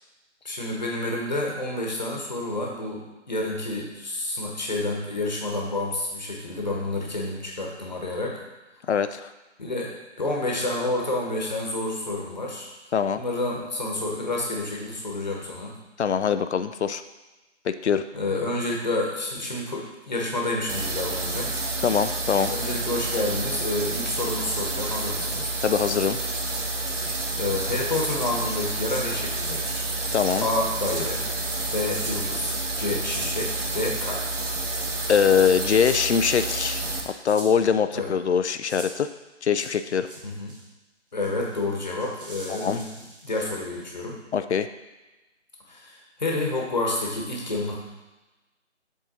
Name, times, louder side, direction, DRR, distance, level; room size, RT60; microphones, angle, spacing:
voice 1, 0.4-8.4 9.6-12.7 13.2-15.7 18.1-21.6 22.5-25.6 27.3-29.8 30.4-31.3 31.7-34.3 37.9-38.1 40.2-40.6 41.1-42.9 43.2-44.2 45.7-47.8, left 2 dB, 35° left, -1 dB, 1.2 m, -29 dB
voice 2, 8.9-9.3 12.9-13.2 16.0-17.0 17.6-18.0 21.8-22.5 25.6-26.2 30.1-30.5 35.1-39.1 39.4-40.1 42.5-42.8 44.3-44.7, left 7 dB, 65° left, 11 dB, 0.5 m, -23 dB
sound 1, 20.7-37.0, right 2 dB, 80° right, 1.1 m, -29 dB
sound 2, 27.9-28.1 28.9-29.5 30.1-30.4 30.8-31.1 31.9-32.2 33.1-33.4 34.8-35.1 35.8-36.0 37.3-37.5 38.7-38.9 39.6-40.2 40.5-40.6 41.2-43.9, right 2 dB, 45° right, 1.2 m, -41 dB
7.4 x 3.9 x 3.9 m, 1.1 s
figure-of-eight pair, 170°, 36 cm